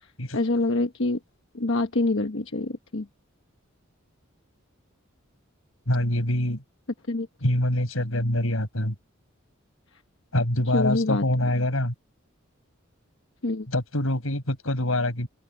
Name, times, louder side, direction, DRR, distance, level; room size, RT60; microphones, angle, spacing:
voice 1, 0.3-1.2 1.5-3.1 7.1-7.3 10.7-11.2 13.4-13.7, left 2 dB, 65° left, 1.3 m, -25 dB
voice 2, 5.9-6.6 7.4-8.9 10.3-11.9 13.7-15.3, left 1 dB, 85° left, 5.8 m, -25 dB
open air
head